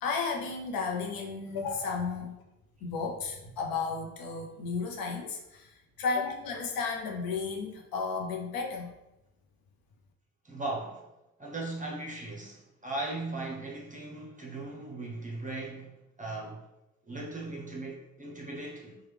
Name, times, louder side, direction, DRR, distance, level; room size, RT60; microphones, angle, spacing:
voice 1, 0.0-2.4 2.8-8.9, left 4 dB, 65° left, 1 dB, 0.6 m, -33 dB
voice 2, 10.4-11.1 11.4-16.6 17.1-19.0, right 2 dB, 20° right, -2 dB, 0.7 m, -38 dB
3.0 x 2.3 x 3.2 m, 0.94 s
hypercardioid pair, 45°, 38 cm